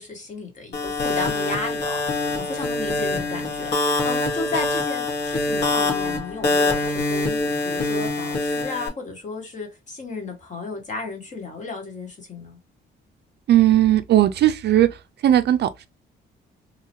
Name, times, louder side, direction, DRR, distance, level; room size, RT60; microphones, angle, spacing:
voice 1, 0.0-7.4 7.6-12.6, left 3 dB, 40° left, 1.4 m, -33 dB
sound 1, 0.7-8.9, left 2 dB, 60° left, 1.5 m, -24 dB
voice 2, 13.5-14.9 15.2-15.9, right 12 dB, 60° right, 0.4 m, -17 dB
2.9 x 2.3 x 2.8 m
cardioid pair, 90°, 20 cm